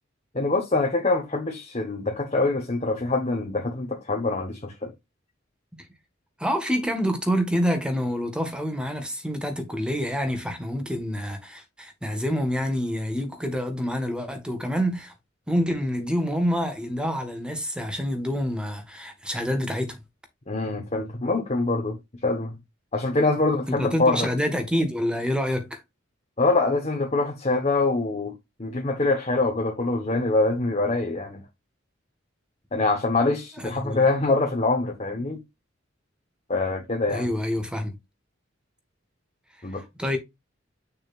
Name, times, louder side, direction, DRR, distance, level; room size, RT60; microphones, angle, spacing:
voice 1, 0.3-4.9 20.5-22.0 22.2-22.6 22.9-24.3 26.4-28.3 28.6-31.4 32.7-35.4 36.5-37.3 39.6-39.8, left 3 dB, 35° left, 1.2 m, -24 dB
voice 2, 6.4-15.1 15.5-20.0 23.7-25.8 33.6-34.0 37.1-38.0 40.0-40.2, equal, 5° right, 1.6 m, -27 dB
6.7 x 6.2 x 2.5 m
head